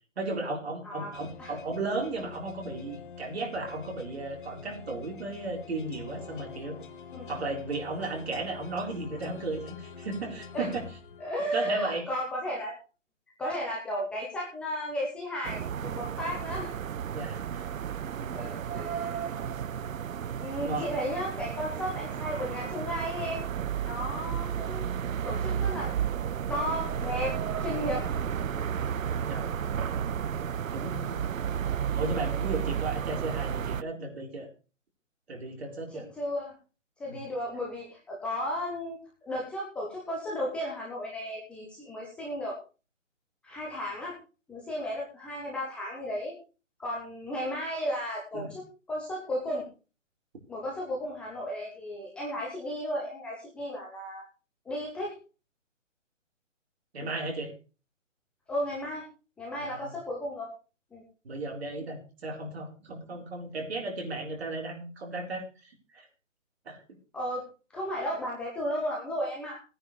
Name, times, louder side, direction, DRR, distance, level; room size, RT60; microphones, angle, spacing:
voice 1, 0.2-6.8 7.3-10.8 11.5-12.0 17.1-17.7 18.2-18.3 20.6-20.9 29.3-29.5 30.7-31.3 32.0-34.5 35.3-36.1 37.1-37.2 48.3-48.5 56.9-57.5 59.6-59.9 61.2-66.1 66.7-66.8, right 2 dB, 50° right, 1 dB, 4.3 m, -35 dB
voice 2, 0.8-1.5 7.1-7.3 10.5-10.7 11.2-12.7 13.4-16.7 18.3-19.3 20.4-23.4 23.8-24.9 25.2-25.9 26.5-28.1 29.4-29.6 35.9-36.5 37.0-39.0 39.2-42.6 43.4-44.1 44.5-46.3 46.8-49.6 50.5-54.3 54.7-55.1 57.0-57.1 58.5-59.1 59.4-60.5 60.9-61.0 67.1-67.4 67.7-69.6, equal, 5° left, -4 dB, 0.8 m, -34 dB
sound 1, 1.1-11.8, left 6 dB, 40° left, 1.1 m, -46 dB
sound 2, 15.4-33.8, right 8 dB, 85° right, 0.6 m, -32 dB
19.0 x 9.6 x 3.3 m, 0.34 s
hypercardioid pair, 155°, 39 cm